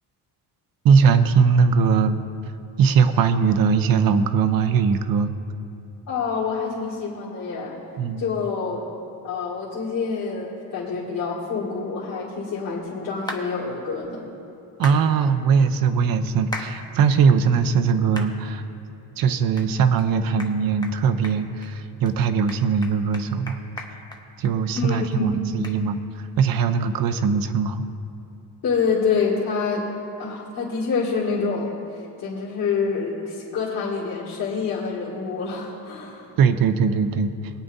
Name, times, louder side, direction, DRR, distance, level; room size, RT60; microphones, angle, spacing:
voice 1, 0.8-2.2 2.8-5.3 8.0-8.3 14.8-18.6 19.2-23.6 23.9-24.0 24.4-27.9 36.4-37.3, right 6 dB, 60° right, 9 dB, 0.7 m, -20 dB
voice 2, 6.1-7.8 8.2-8.9 9.2-14.3 24.7-25.4 28.6-29.8 30.2-36.3, left 5 dB, 60° left, -7 dB, 2.3 m, -27 dB
sound 1, 13.3-13.5 14.8-15.0 16.5-16.7 17.2-17.3 18.2-18.3 18.8-18.9 19.6-19.7 20.0-20.1 20.4-20.5 20.8-21.0 21.2-21.7 22.1-22.2 22.5-24.9 25.1-25.2 25.6-25.8, left 2 dB, 10° left, 0.8 m, -35 dB
21.5 x 9.3 x 2.7 m, 2.7 s
cardioid pair, 140°, 39 cm